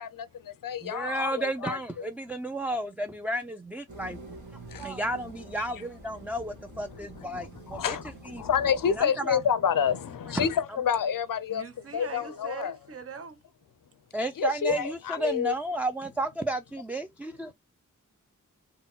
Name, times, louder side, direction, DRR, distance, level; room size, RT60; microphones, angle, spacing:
voice 1, 0.0-2.0 4.7-4.9 7.2-8.0 8.4-11.6 11.9-12.7 14.4-15.5, left 8 dB, 85° left, 0.5 m, -28 dB
voice 2, 0.8-4.4 4.8-8.0 8.2-8.4 9.0-9.4 10.3-10.5 14.1-17.5, right 1 dB, 5° right, 0.3 m, -32 dB
sound 1, 3.9-9.0, right 2 dB, 65° right, 1.6 m, -46 dB
voice 3, 11.5-13.4, right 6 dB, 45° right, 0.7 m, -41 dB
3.9 x 2.1 x 3.8 m
wide cardioid pair, 60°, 32 cm